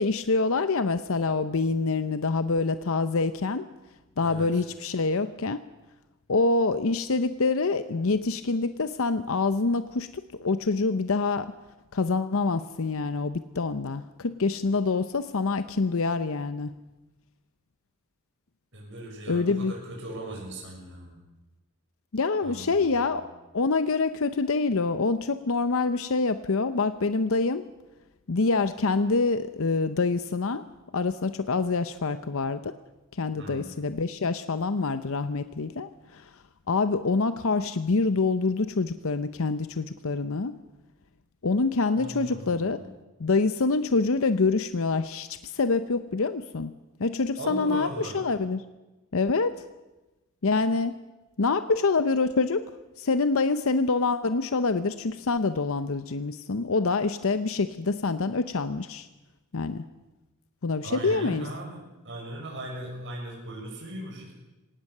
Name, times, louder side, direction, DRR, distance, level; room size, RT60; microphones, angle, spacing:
voice 1, 0.0-3.7 4.2-5.6 6.3-11.5 11.9-16.7 19.3-19.7 22.1-23.2 23.5-27.6 28.3-30.6 30.9-32.7 33.2-36.3 36.7-40.5 41.4-42.8 43.2-46.7 47.0-48.6 49.1-49.6 50.4-50.9 51.4-52.6 53.0-59.1 59.5-59.8 60.6-61.5, left 3 dB, 70° left, 11 dB, 0.8 m, -26 dB
voice 2, 4.2-4.6 18.7-21.2 22.4-23.2 33.4-33.7 41.9-42.9 47.4-48.3 60.8-64.3, right 1 dB, 60° right, -1 dB, 6.6 m, -39 dB
24.5 x 18.0 x 6.7 m, 1.1 s
head